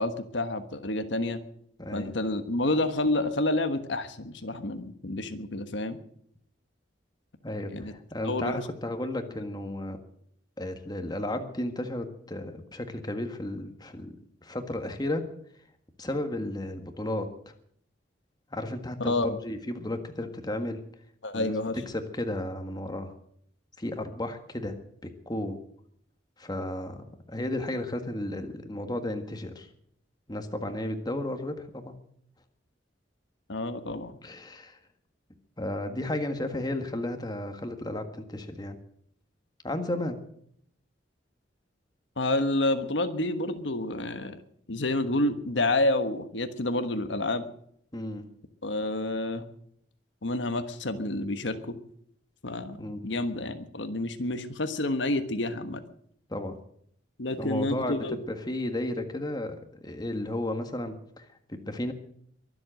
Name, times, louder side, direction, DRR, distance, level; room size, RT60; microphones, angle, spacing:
voice 1, 0.0-1.4 1.9-6.0 7.7-7.9 8.2-8.7 19.0-19.4 21.2-21.8 33.5-34.2 42.2-44.4 44.7-47.5 48.6-49.5 50.2-51.8 52.4-55.8 57.2-58.2, left 2 dB, 85° left, 9 dB, 1.4 m, -29 dB
voice 2, 1.8-2.1 7.4-10.0 10.6-14.1 14.4-15.2 16.0-17.3 18.5-20.8 21.3-21.6 21.9-23.1 23.8-25.6 26.4-29.7 30.3-31.9 34.2-34.8 35.6-38.8 39.6-40.2 47.9-48.3 52.8-53.2 56.3-56.6 57.4-61.9, left 1 dB, 20° left, 6 dB, 1.7 m, -33 dB
23.5 x 7.9 x 7.7 m, 0.68 s
head